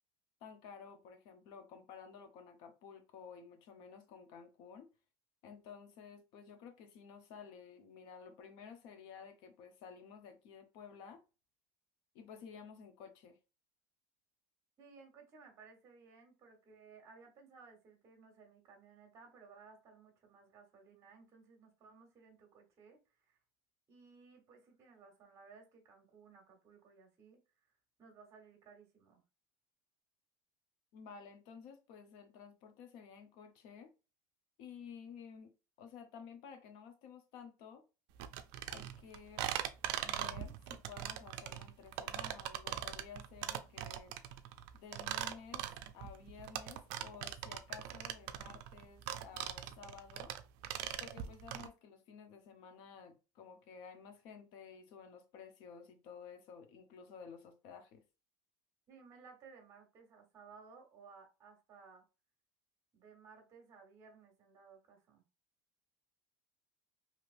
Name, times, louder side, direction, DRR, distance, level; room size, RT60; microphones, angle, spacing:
voice 1, 0.4-4.9 5.4-11.2 12.1-13.4 30.9-33.9 34.6-35.5 35.8-37.8 38.7-39.5 40.0-44.1 44.7-45.7 45.9-50.3 51.0-58.0, left 6 dB, 60° left, 0.7 m, -53 dB
voice 2, 14.8-23.4 23.9-27.4 28.0-29.2 58.9-62.0 62.9-65.2, right 5 dB, 35° right, 1.2 m, -59 dB
sound 1, 38.2-51.7, right 11 dB, 65° right, 0.4 m, -41 dB
3.2 x 2.8 x 2.5 m
supercardioid pair, 140°, 9 cm